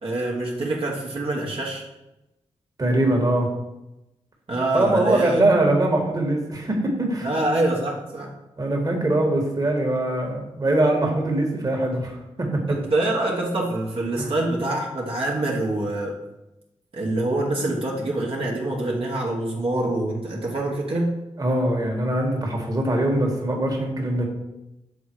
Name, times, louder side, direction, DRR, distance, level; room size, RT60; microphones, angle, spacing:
voice 1, 0.0-1.8 4.5-5.4 7.2-8.3 12.7-16.1 16.9-21.2, right 2 dB, 50° right, -3 dB, 1.3 m, -25 dB
voice 2, 2.8-3.5 4.7-7.3 8.6-12.8 14.1-14.3 21.4-24.3, right 1 dB, 30° right, 1 dB, 1.6 m, -22 dB
7.2 x 3.7 x 4.6 m, 0.95 s
cardioid pair, 70°, 12 cm